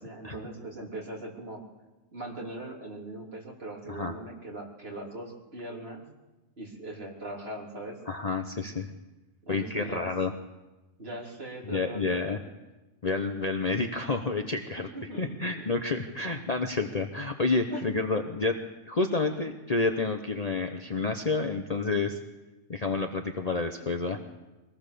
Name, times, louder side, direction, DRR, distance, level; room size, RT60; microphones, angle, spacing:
voice 1, 0.0-1.6 2.1-6.0 6.6-8.0 9.4-10.1 11.0-12.4 14.8-15.7 16.2-16.5 17.7-18.0, right 1 dB, 55° right, -2 dB, 3.8 m, -40 dB
voice 2, 8.1-8.9 9.5-10.3 11.6-12.4 13.0-14.9 15.2-18.6 18.9-22.2 22.7-24.2, left 3 dB, 35° left, 5 dB, 1.1 m, -29 dB
23.5 x 18.0 x 6.9 m, 1.1 s
omnidirectional pair, 1.3 m